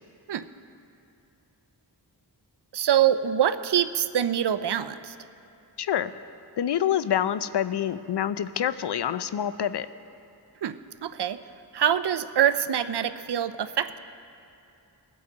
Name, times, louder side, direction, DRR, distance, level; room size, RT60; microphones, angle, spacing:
voice 1, 2.7-5.1 10.6-11.4 11.7-14.0, right 10 dB, 70° right, 12 dB, 0.6 m, -25 dB
voice 2, 5.8-6.1 6.6-9.9, left 10 dB, 70° left, 14 dB, 0.5 m, -26 dB
21.5 x 8.6 x 3.9 m, 2.6 s
wide cardioid pair, 80°, 43 cm